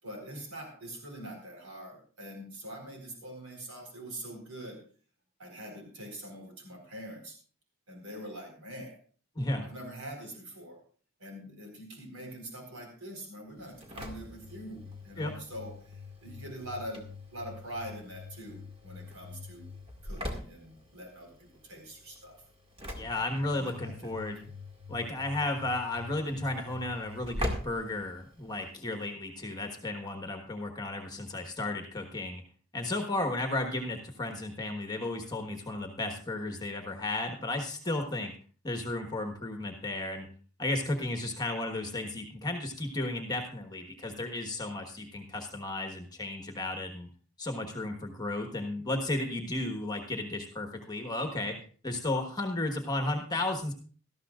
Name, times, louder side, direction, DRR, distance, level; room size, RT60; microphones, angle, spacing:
voice 1, 0.0-4.8 5.4-7.4 7.9-9.0 9.6-10.8 11.2-19.7 20.0-22.4 23.5-24.1, right 1 dB, 80° right, 2 dB, 4.4 m, -44 dB
voice 2, 9.3-9.7 15.2-15.3 22.9-24.5 24.9-32.4 32.7-38.3 38.6-40.3 40.6-47.1 47.4-51.6 51.8-53.7, left 2 dB, 20° left, 4 dB, 1.3 m, -34 dB
Engine / Slam, 13.6-28.7, left 1 dB, 25° right, 2.0 m, -43 dB
18.5 x 13.0 x 2.4 m, 0.42 s
head